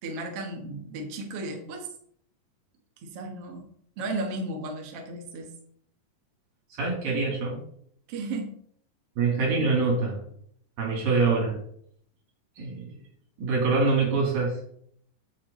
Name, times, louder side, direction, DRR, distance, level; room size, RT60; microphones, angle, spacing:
voice 1, 0.0-1.9 3.0-3.7 4.0-5.5 8.1-8.5, right 2 dB, 50° right, 1 dB, 2.2 m, -34 dB
voice 2, 6.8-7.6 9.2-10.2 10.8-11.6 12.6-12.9 13.4-14.6, right 4 dB, 80° right, 0 dB, 4.7 m, -24 dB
9.8 x 8.2 x 3.8 m, 0.65 s
omnidirectional pair, 4.0 m